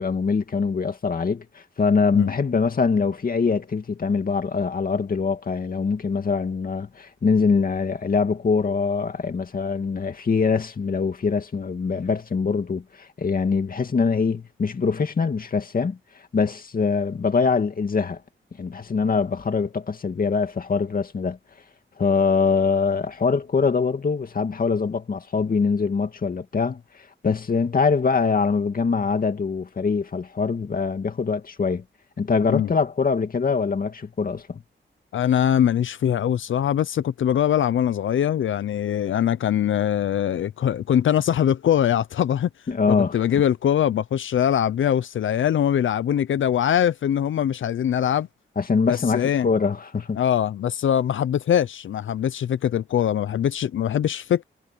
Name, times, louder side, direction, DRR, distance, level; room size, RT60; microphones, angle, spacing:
voice 1, 0.0-16.0 16.3-18.2 18.6-21.4 22.0-26.8 27.2-31.8 32.2-34.6 42.7-43.2 48.6-50.2, left 5 dB, 45° left, 2.4 m, -23 dB
voice 2, 35.1-42.5 43.1-48.3 48.9-49.5 50.2-54.4, left 10 dB, 75° left, 0.6 m, -22 dB
wide cardioid pair, 115°, 20 cm